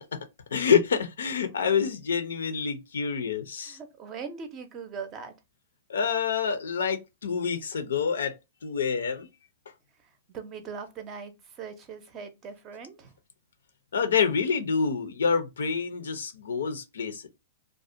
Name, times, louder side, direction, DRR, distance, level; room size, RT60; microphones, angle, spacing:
voice 1, 0.5-3.8 5.9-8.4 8.6-9.3 13.9-17.3, left 6 dB, 90° left, 0.5 m, -27 dB
voice 2, 3.6-5.3 10.3-13.1, right 6 dB, 30° right, 0.5 m, -40 dB
2.4 x 2.1 x 2.5 m
hypercardioid pair, 145°, 0 cm